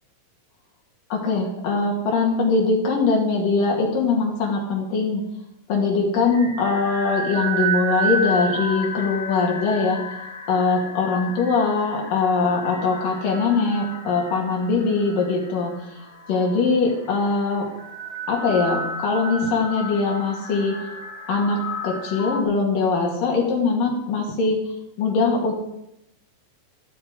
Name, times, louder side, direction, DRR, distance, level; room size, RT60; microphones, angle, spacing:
voice 1, 1.1-5.2 5.7-10.0 10.5-16.0 16.3-17.7 18.3-20.7 21.3-24.6 25.0-25.5, left 4 dB, 70° left, -2 dB, 3.7 m, -22 dB
sound 1, 6.3-22.4, right 2 dB, 30° left, 2.8 m, -32 dB
13.5 x 13.0 x 5.1 m, 0.83 s
omnidirectional pair, 4.0 m